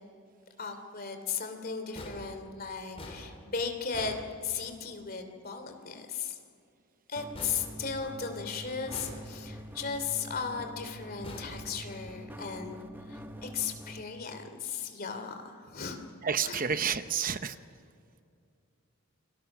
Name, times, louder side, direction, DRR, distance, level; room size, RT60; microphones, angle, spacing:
voice 1, 0.6-6.4 7.1-16.0 16.4-16.6, left 5 dB, 45° left, 6 dB, 2.9 m, -36 dB
sound 1, 2.0-5.0 7.3-8.4 8.9-9.7 11.2-12.3, left 1 dB, 25° left, 4.0 m, -46 dB
sound 2, 7.2-14.0, equal, 10° right, 0.9 m, -45 dB
voice 2, 16.2-17.6, right 7 dB, 40° right, 10 dB, 0.8 m, -30 dB
29.5 x 24.5 x 6.2 m, 2.4 s
head